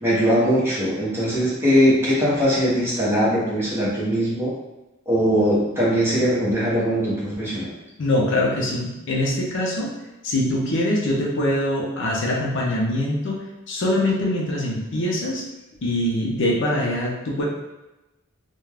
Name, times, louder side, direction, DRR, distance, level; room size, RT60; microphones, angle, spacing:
voice 1, 0.0-4.5 5.1-7.7, equal, 10° right, -8 dB, 0.9 m, -20 dB
voice 2, 8.0-9.9 10.2-15.4 15.8-17.4, left 1 dB, 60° left, -3 dB, 0.6 m, -23 dB
2.4 x 2.2 x 3.3 m, 1.0 s
head